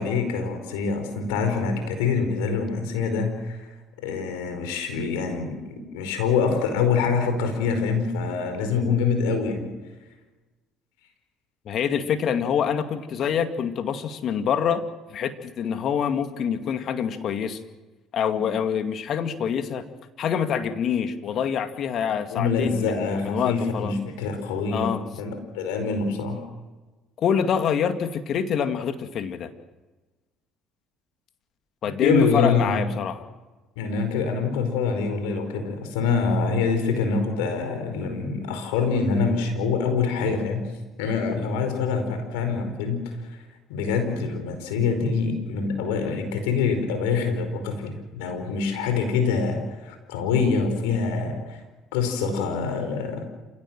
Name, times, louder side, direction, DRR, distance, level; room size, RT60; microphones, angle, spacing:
voice 1, 0.0-3.6 4.0-9.7 18.4-18.5 22.3-26.4 32.0-32.9 33.7-40.7 41.0-43.4 43.7-51.6 51.9-53.2, left 5 dB, 85° left, 6 dB, 4.9 m, -25 dB
voice 2, 11.7-14.8 15.1-17.6 18.1-19.9 20.2-23.9 24.7-25.0 27.2-29.5 31.8-33.3, left 8 dB, 60° left, 8 dB, 2.2 m, -26 dB
28.0 x 17.5 x 7.5 m, 1.2 s
supercardioid pair, 75°, 0 cm